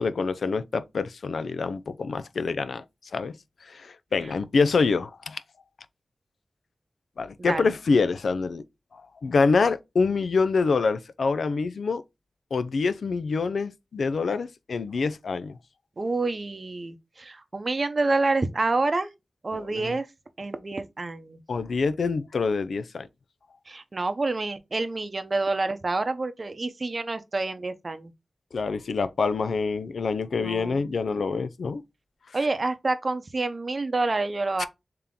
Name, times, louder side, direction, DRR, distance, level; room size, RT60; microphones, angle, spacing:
voice 1, 0.0-2.8 3.1-5.4 7.2-8.6 8.9-12.0 12.5-15.6 19.7-19.9 21.5-23.1 28.5-31.8 34.6-34.7, left 4 dB, 85° left, 0.3 m, -26 dB
voice 2, 16.0-19.1 19.4-20.1 20.4-21.4 23.7-28.1 30.4-30.9 32.3-34.7, right 3 dB, 45° right, 0.6 m, -28 dB
3.5 x 2.8 x 3.7 m
wide cardioid pair, 65°, 0 cm